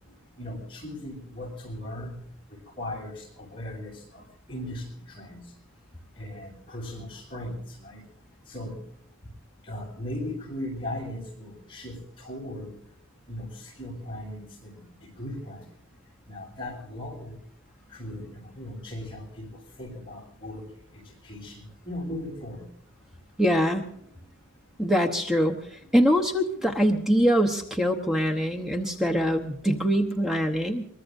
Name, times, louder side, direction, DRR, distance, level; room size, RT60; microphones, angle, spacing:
voice 1, 0.4-2.2 2.5-5.5 6.1-8.0 8.5-8.8 9.6-12.7 13.3-15.6 16.3-17.4 17.9-20.6 20.9-22.7 26.5-26.6, left 1 dB, 25° left, -2 dB, 8.0 m, -38 dB
voice 2, 23.4-23.9 24.8-30.8, equal, ahead, 5 dB, 0.9 m, -23 dB
23.5 x 21.5 x 2.6 m, 0.71 s
head